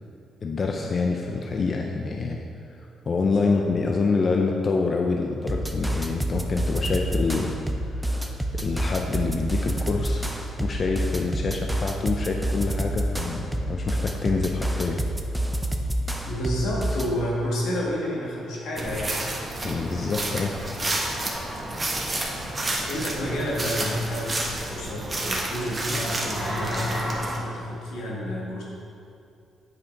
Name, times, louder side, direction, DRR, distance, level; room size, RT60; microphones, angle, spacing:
voice 1, 0.4-2.4 3.1-7.6 7.9-10.3 10.6-15.0 19.6-20.5, left 4 dB, 40° left, 1 dB, 0.5 m, -26 dB
sound 1, 5.5-17.2, right 1 dB, 5° right, 0.6 m, -28 dB
voice 2, 16.3-19.2 22.8-28.6, left 1 dB, 85° left, -4 dB, 1.9 m, -30 dB
sound 2, 18.8-27.4, right 1 dB, 25° right, 1.2 m, -30 dB
8.6 x 5.1 x 4.6 m, 2.5 s
cardioid pair, 90°, 0 cm